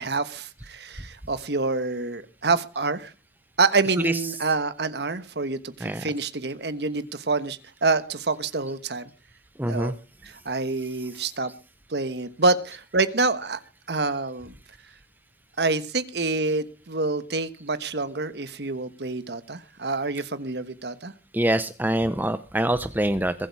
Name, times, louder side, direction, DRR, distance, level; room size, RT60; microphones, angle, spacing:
voice 1, 0.0-3.1 3.6-9.0 9.7-9.9 10.4-11.5 11.9-13.6 13.9-14.5 15.6-21.1, right 3 dB, 65° right, 1.3 m, -27 dB
voice 2, 4.0-4.4 5.8-6.0 9.6-9.9 21.3-23.3, right 1 dB, 10° right, 0.7 m, -25 dB
22.5 x 8.5 x 4.8 m
head